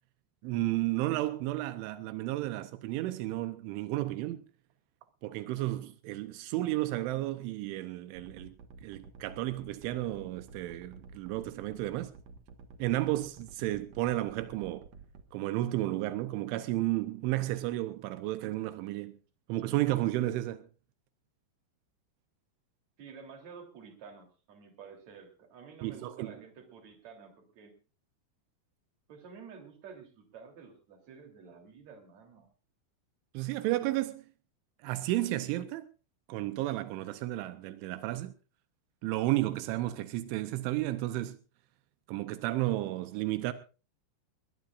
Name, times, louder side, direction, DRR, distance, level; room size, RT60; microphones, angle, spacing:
voice 1, 0.4-4.4 5.2-8.5 8.8-12.1 12.8-14.9 15.3-19.2 19.5-20.6 25.8-26.3 33.3-34.2 34.8-35.9 36.3-38.3 39.0-41.4 42.1-43.5, right 16 dB, 85° right, 3.3 m, -32 dB
sound 1, 8.1-15.2, right 4 dB, 65° right, 1.7 m, -51 dB
voice 2, 23.0-27.8 29.1-32.5, right 6 dB, 40° right, 4.2 m, -50 dB
21.0 x 19.5 x 2.5 m
omnidirectional pair, 5.4 m